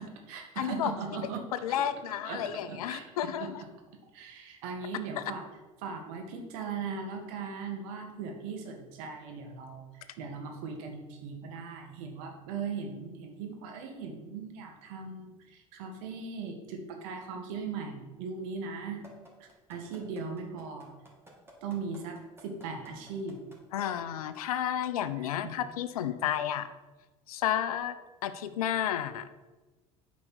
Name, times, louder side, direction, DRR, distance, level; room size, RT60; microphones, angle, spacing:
voice 1, 0.0-1.8 2.2-3.5 4.1-5.5 5.8-9.9 10.2-19.1 19.4-20.9 21.6-23.4 25.2-25.5, right 5 dB, 70° right, 3 dB, 1.8 m, -39 dB
voice 2, 0.6-0.9 1.5-3.6 5.2-5.3 23.7-26.7 27.3-27.9 28.2-29.4, left 10 dB, 80° left, 12 dB, 0.7 m, -31 dB
sound 1, 19.0-23.8 24.3-24.4, right 1 dB, 15° right, 3.1 m, -54 dB
8.6 x 5.2 x 6.3 m, 1.2 s
hypercardioid pair, 75°, 18 cm